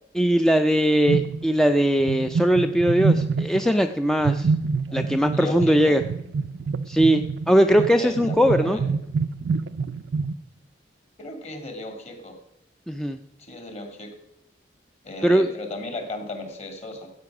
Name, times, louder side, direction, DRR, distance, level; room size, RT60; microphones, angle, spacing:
voice 1, 0.1-4.5 4.9-6.0 6.9-8.8 12.9-13.2 15.2-15.5, equal, 5° left, 7 dB, 0.4 m, -20 dB
sound 1, 1.1-1.7 2.0-3.7 4.2-10.3, right 4 dB, 75° right, 0.4 m, -26 dB
voice 2, 5.3-6.0 7.8-8.9 11.2-12.4 13.4-14.1 15.0-17.1, left 2 dB, 35° left, 5 dB, 2.4 m, -36 dB
14.0 x 8.6 x 6.0 m, 0.82 s
head